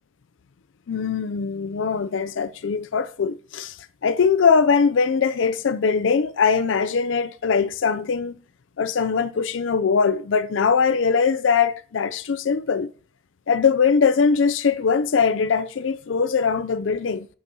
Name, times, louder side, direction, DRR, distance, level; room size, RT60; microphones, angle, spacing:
voice 1, 0.9-3.8 4.0-8.3 8.8-12.9 13.5-17.3, left 5 dB, 85° left, 0.5 m, -21 dB
6.3 x 6.1 x 4.1 m
head